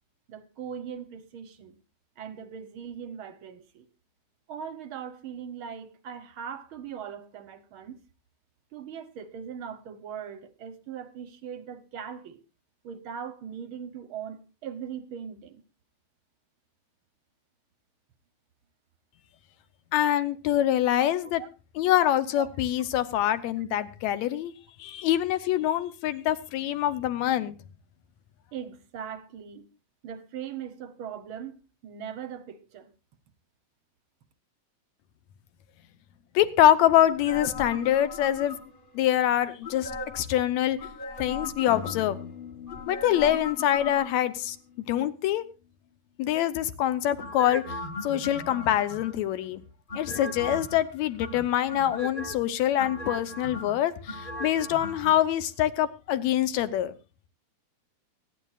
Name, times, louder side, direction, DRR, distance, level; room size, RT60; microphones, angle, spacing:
voice 1, 0.3-1.7 2.2-3.8 4.5-8.0 8.7-12.4 12.8-15.6 21.4-21.5 22.4-22.5 28.5-29.7 30.0-31.5 31.8-32.9, right 8 dB, 65° right, 1.4 m, -40 dB
voice 2, 19.9-21.4 21.8-24.5 24.8-27.5 36.3-38.6 38.9-40.8 41.2-42.2 42.9-44.6 44.9-45.5 46.2-47.7 48.0-49.6 50.0-56.9, left 12 dB, 75° left, 2.0 m, -25 dB
sound 1, 37.1-38.9 39.6-40.3 40.8-42.2 42.7-44.4 47.2-49.3 49.9-50.8 51.2-52.4 52.8-55.1 55.4-55.5, left 2 dB, 30° left, 1.0 m, -38 dB
sound 2, 41.7-45.5, left 7 dB, 55° left, 1.9 m, -44 dB
24.0 x 10.0 x 2.4 m
omnidirectional pair, 3.4 m